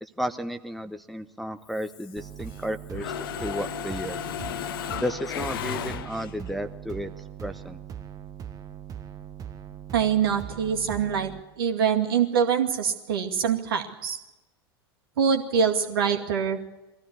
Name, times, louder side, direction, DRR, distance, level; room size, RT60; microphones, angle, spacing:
voice 1, 0.0-4.2 5.0-7.1 7.4-7.8, equal, ahead, 7 dB, 0.8 m, -33 dB
Mechanisms, 1.7-2.6 2.9-6.5, left 10 dB, 65° left, 1.0 m, -35 dB
sound 1, 2.2-11.4, right 9 dB, 25° right, 1.2 m, -40 dB
voice 2, 9.9-11.3 11.6-14.2 15.2-16.7, right 7 dB, 65° right, 3 dB, 2.2 m, -24 dB
22.0 x 15.0 x 9.8 m, 1.0 s
figure-of-eight pair, 85°, 13 cm